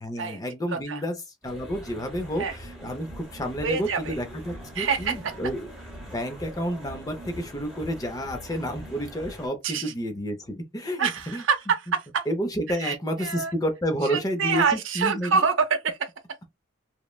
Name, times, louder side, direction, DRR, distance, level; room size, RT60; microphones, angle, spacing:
voice 1, 0.0-1.1 1.4-5.7 6.1-11.4 12.3-15.4, equal, 20° left, 0.5 m, -30 dB
sound 1, 1.4-9.5, equal, ahead, 1.0 m, -42 dB
voice 2, 3.6-4.2 4.7-5.3 9.6-9.9 11.0-12.3 12.8-13.5 14.0-16.1, right 5 dB, 75° right, 0.6 m, -26 dB
3.1 x 2.1 x 2.2 m
head